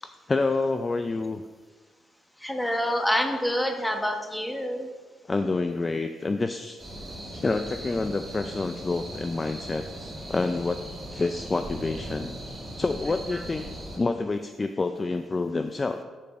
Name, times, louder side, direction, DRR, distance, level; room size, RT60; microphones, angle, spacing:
voice 1, 0.0-1.4 5.3-6.8 7.3-10.8 11.1-12.3 12.8-13.6 13.9-16.0, left 3 dB, 25° left, 7 dB, 0.4 m, -28 dB
voice 2, 2.4-4.9, equal, 10° left, 4 dB, 1.1 m, -27 dB
sound 1, 6.8-14.0, right 1 dB, 20° right, 2.3 m, -39 dB
7.1 x 5.1 x 6.2 m, 1.4 s
cardioid pair, 90°, 0 cm